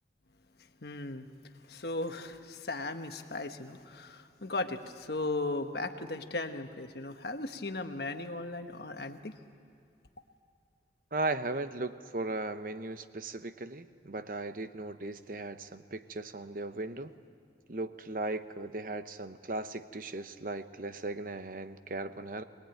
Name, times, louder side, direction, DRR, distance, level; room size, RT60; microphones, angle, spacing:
voice 1, 0.8-1.3 1.7-9.3, left 2 dB, 65° left, 7 dB, 1.2 m, -37 dB
voice 2, 11.1-17.1 17.7-22.4, right 2 dB, 50° right, 11 dB, 0.9 m, -37 dB
23.5 x 20.0 x 9.1 m, 2.4 s
head